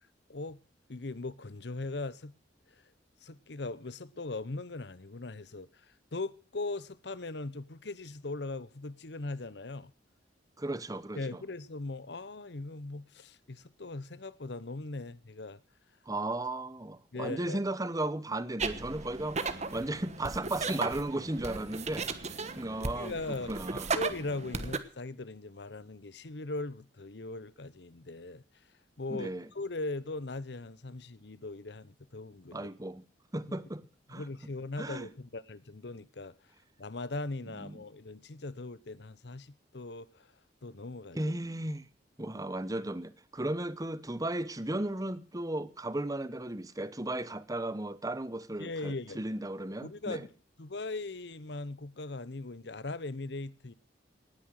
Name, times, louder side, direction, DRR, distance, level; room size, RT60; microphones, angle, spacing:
voice 1, 0.3-0.6 0.9-2.3 2.7-2.8 3.2-5.9 6.1-9.9 11.1-15.6 17.1-17.6 22.9-23.5 23.9-28.4 29.0-32.7 34.1-36.3 36.8-40.3 40.6-41.3 48.6-49.2 49.8-50.3 50.6-53.7, left 2 dB, 65° left, 0.9 m, -39 dB
voice 2, 10.6-11.4 16.1-22.3 22.6-23.9 29.1-29.5 32.5-33.0 33.3-33.8 34.1-34.2 34.8-35.1 37.5-37.7 41.1-41.9 42.2-50.2, right 1 dB, 20° right, 1.0 m, -35 dB
sound 1, 18.6-24.8, right 4 dB, 35° right, 1.3 m, -36 dB
18.5 x 9.8 x 6.4 m
head